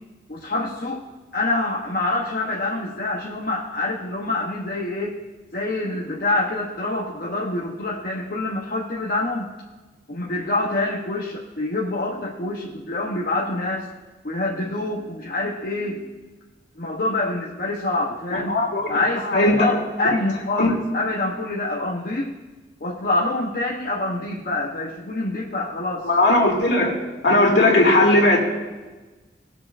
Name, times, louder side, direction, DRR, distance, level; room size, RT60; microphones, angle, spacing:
voice 1, 0.3-1.0 1.3-5.2 5.5-9.5 10.1-13.9 14.2-16.0 16.8-18.6 18.9-22.3 22.8-26.1, left 2 dB, 55° left, -3 dB, 0.8 m, -26 dB
voice 2, 18.5-18.9 19.2-19.6 20.6-20.7 26.0-27.0 27.2-28.4, left 2 dB, 85° left, -1 dB, 2.2 m, -17 dB
19.0 x 6.9 x 2.5 m, 1.2 s
head